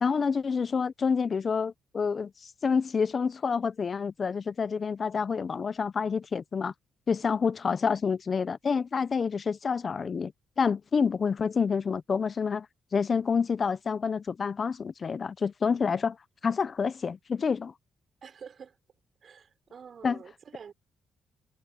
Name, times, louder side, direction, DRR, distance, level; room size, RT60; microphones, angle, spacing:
voice 1, 0.0-6.7 7.1-12.7 12.9-16.2 16.4-17.7 20.0-20.2, left 5 dB, 40° left, 0.6 m, -28 dB
voice 2, 18.2-18.8 19.2-20.7, right 7 dB, 50° right, 4.5 m, -47 dB
cardioid pair, 90°, 0 cm